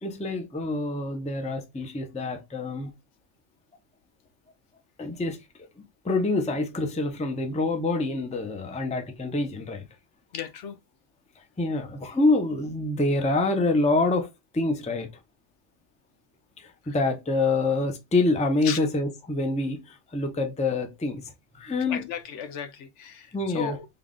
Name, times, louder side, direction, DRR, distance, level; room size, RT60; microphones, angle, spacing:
voice 1, 0.0-2.9 5.0-5.7 6.0-9.9 11.6-14.3 14.5-15.1 16.6-21.2 21.6-22.0 23.3-23.8, left 2 dB, 10° left, 0.5 m, -26 dB
voice 2, 10.3-10.8 18.6-18.8 21.9-23.3 23.5-23.9, left 8 dB, 75° left, 0.9 m, -34 dB
3.8 x 2.4 x 3.6 m
omnidirectional pair, 1.2 m